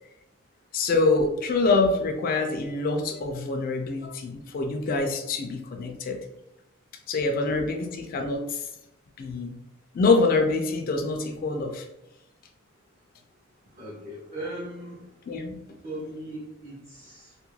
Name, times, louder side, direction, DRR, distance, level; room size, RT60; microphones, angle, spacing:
voice 1, 0.7-6.2 7.1-8.6 9.2-9.6 9.9-11.9 15.3-15.6, left 3 dB, 45° left, 4 dB, 0.3 m, -25 dB
voice 2, 13.7-15.2 15.8-17.4, right 1 dB, 35° right, -7 dB, 0.6 m, -39 dB
2.3 x 2.2 x 3.0 m, 0.89 s
head